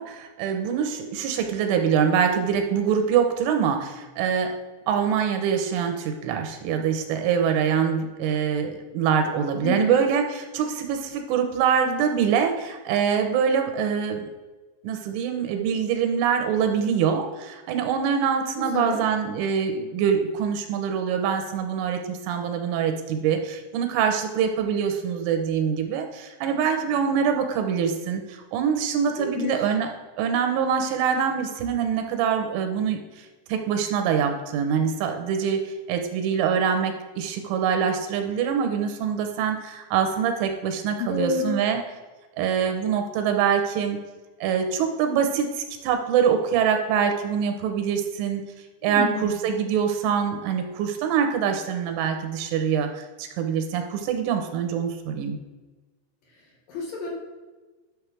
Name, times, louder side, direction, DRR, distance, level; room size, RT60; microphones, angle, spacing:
voice 1, 0.0-4.6 4.9-14.3 14.8-29.9 30.2-41.8 42.4-44.0 44.4-48.4 48.8-55.4, right 7 dB, 90° right, 5 dB, 3.5 m, -24 dB
voice 2, 9.6-10.0 18.7-19.0 29.1-29.7 41.0-41.6 48.8-49.4 56.7-57.1, left 3 dB, 60° left, -3 dB, 2.9 m, -29 dB
11.5 x 6.5 x 3.5 m, 1.2 s
omnidirectional pair, 5.4 m